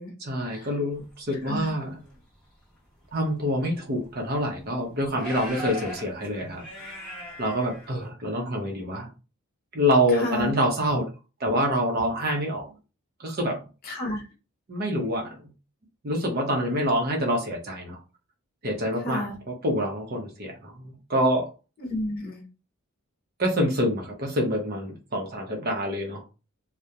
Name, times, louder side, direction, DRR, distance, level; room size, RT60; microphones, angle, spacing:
voice 1, 0.2-2.0 3.1-6.6 7.4-9.1 9.7-11.1 11.4-12.7 13.2-13.6 14.7-15.4 16.0-18.0 18.6-19.3 19.6-21.5 23.4-26.2, equal, 45° right, 1 dB, 0.7 m, -26 dB
sound 1, 1.5-2.2 3.0-3.1 3.6-3.7 4.3-4.4 5.1-8.1, equal, 5° left, 0.9 m, -39 dB
voice 2, 10.1-10.5 13.8-14.2 19.0-19.4 21.8-22.4, left 1 dB, 45° left, 1 dB, 0.7 m, -31 dB
2.3 x 2.1 x 2.7 m, 0.32 s
head